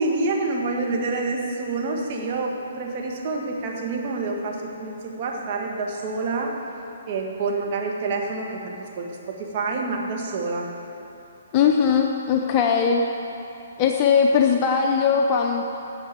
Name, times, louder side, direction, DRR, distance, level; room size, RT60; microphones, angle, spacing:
voice 1, 0.0-6.6 7.1-10.7, right 3 dB, 45° right, 0 dB, 1.6 m, -27 dB
voice 2, 11.5-13.1 13.8-15.6, left 6 dB, 35° left, 2 dB, 0.6 m, -19 dB
9.0 x 6.8 x 8.1 m, 2.9 s
hypercardioid pair, 135°, 0 cm